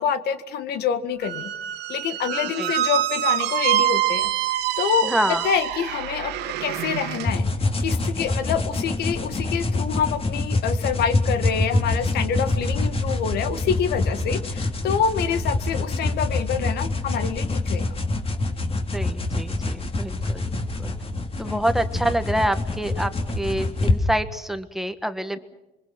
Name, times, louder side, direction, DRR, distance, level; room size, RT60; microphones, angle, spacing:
voice 1, 0.0-1.5 1.9-4.3 4.8-7.5 7.8-17.9 21.4-21.6, left 7 dB, 70° left, 11 dB, 1.8 m, -26 dB
Squeak, 1.2-7.3, right 13 dB, 90° right, 2.1 m, -25 dB
voice 2, 5.0-5.5 18.9-20.9 21.4-25.4, right 1 dB, ahead, 9 dB, 1.4 m, -27 dB
sound 1, 7.3-24.0, left 2 dB, 35° left, 3.3 m, -26 dB
27.0 x 23.5 x 6.0 m, 1.0 s
cardioid pair, 110°, 17 cm